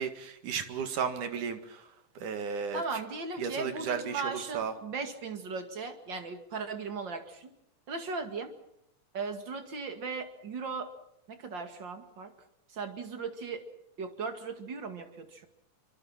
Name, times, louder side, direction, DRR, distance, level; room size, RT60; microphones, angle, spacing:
voice 1, 0.0-1.9 2.2-3.0 3.4-4.7, right 6 dB, 70° right, 7 dB, 3.3 m, -34 dB
voice 2, 2.7-7.5 7.9-8.5 9.1-10.9 11.3-12.3 12.7-13.6 14.0-15.5, right 4 dB, 40° right, 6 dB, 2.5 m, -37 dB
25.5 x 24.5 x 5.8 m, 0.80 s
omnidirectional pair, 3.7 m